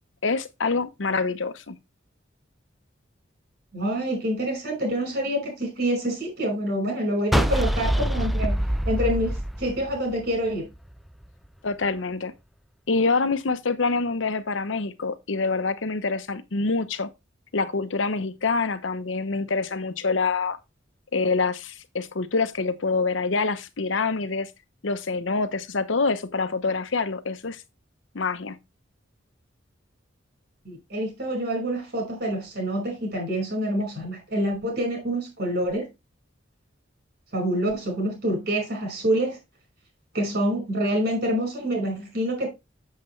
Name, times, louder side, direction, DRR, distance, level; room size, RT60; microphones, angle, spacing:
voice 1, 0.2-1.8 11.6-12.3 12.9-17.1 17.5-20.6 21.1-24.5 24.8-27.6 28.1-28.6, left 4 dB, 85° left, 0.9 m, -26 dB
voice 2, 3.7-10.7 30.6-35.9 37.3-39.4 40.1-42.5, right 1 dB, 60° right, 5.1 m, -27 dB
sound 1, 7.3-10.5, equal, ahead, 0.4 m, -24 dB
7.7 x 7.4 x 3.2 m
head